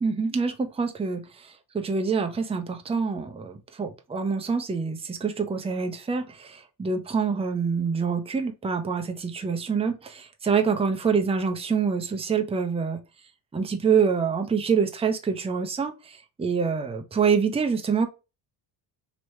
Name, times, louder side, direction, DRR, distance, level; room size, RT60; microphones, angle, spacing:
voice 1, 0.0-13.0 13.5-18.1, right 5 dB, 15° right, 0.6 m, -26 dB
3.0 x 3.0 x 3.1 m
cardioid pair, 90°, 46 cm